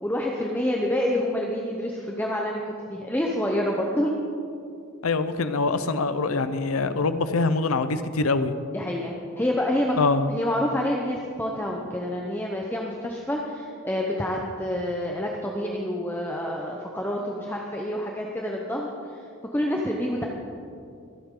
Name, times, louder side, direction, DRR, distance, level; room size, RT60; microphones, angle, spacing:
voice 1, 0.0-2.6 2.9-4.1 8.7-9.9 10.3-18.9 19.1-19.2 19.5-20.3, left 1 dB, 10° left, -1 dB, 0.8 m, -27 dB
voice 2, 5.0-8.5 10.0-10.3, left 3 dB, 85° left, 12 dB, 0.7 m, -24 dB
24.5 x 8.5 x 3.8 m, 2.5 s
head